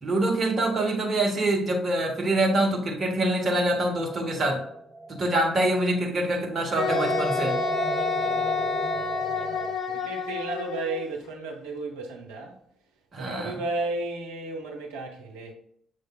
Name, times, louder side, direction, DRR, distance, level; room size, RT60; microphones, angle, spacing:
voice 1, 0.0-4.6 5.1-7.6 13.1-13.6, right 1 dB, 40° right, 1.0 m, -25 dB
sound 1, 4.0-5.8 6.9-9.7, right 2 dB, ahead, 0.6 m, -32 dB
Wind instrument woodwind instrument, 6.8-11.1, left 6 dB, 50° left, 0.6 m, -29 dB
voice 2, 8.1-8.7 8.9-12.6 13.2-15.5, right 2 dB, 70° right, 0.8 m, -34 dB
6.5 x 3.2 x 2.3 m
figure-of-eight pair, 45°, 0 cm